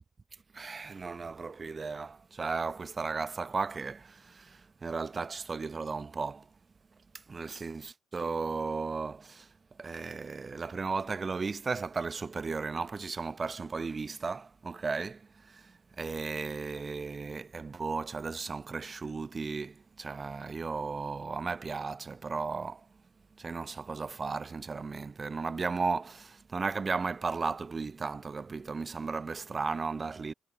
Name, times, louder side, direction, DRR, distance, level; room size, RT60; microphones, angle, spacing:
voice 1, 0.5-6.5 7.1-9.5 9.8-22.9 23.4-30.3, right 4 dB, 35° right, 0.9 m, -35 dB
figure-of-eight pair, 45°, 0 cm